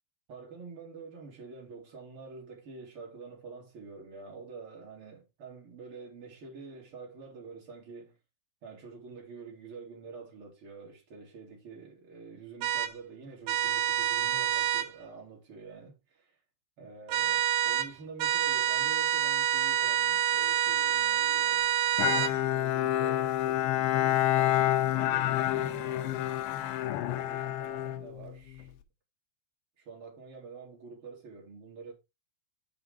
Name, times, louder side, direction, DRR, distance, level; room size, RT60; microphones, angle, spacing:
voice 1, 0.3-8.2 8.6-16.4 16.8-26.4 27.1-28.7 29.8-31.9, right 4 dB, 35° right, 3.3 m, -47 dB
sound 1, 12.6-12.9 13.5-14.9 17.1-17.9 18.2-22.3, right 11 dB, 85° right, 2.9 m, -27 dB
Bowed string instrument, 22.0-28.7, left 13 dB, 85° left, 3.0 m, -28 dB
7.5 x 5.6 x 5.0 m
omnidirectional pair, 5.0 m